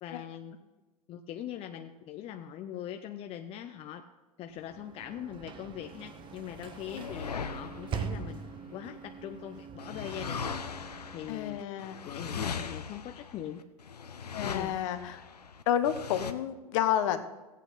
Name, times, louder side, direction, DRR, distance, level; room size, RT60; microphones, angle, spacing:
voice 1, 0.0-0.5 1.1-4.0 4.4-8.4 8.7-10.5 11.1-11.6 12.0-13.6 14.4-14.7, left 10 dB, 30° left, 6 dB, 0.6 m, -41 dB
Sliding door / Slam, 4.5-11.5, right 6 dB, 25° right, 0.7 m, -43 dB
sound 1, 6.2-9.2 9.8-16.3, left 6 dB, 90° left, 0.8 m, -40 dB
voice 2, 11.3-12.0 14.3-15.2 15.7-17.2, left 10 dB, 55° left, 9 dB, 1.1 m, -30 dB
15.5 x 8.3 x 4.0 m, 1.1 s
hypercardioid pair, 105°, 20 cm